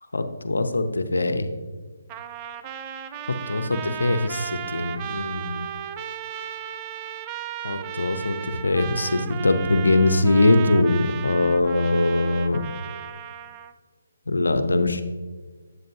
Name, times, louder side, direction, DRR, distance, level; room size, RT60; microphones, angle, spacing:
voice 1, 0.1-1.5 3.5-5.7 7.6-8.4 8.6-12.6 14.3-15.0, left 2 dB, 80° left, 8 dB, 0.6 m, -22 dB
Trumpet, 2.1-13.7, right 9 dB, 25° right, 0.3 m, -35 dB
7.8 x 7.5 x 2.7 m, 1.4 s
figure-of-eight pair, 145°, 0 cm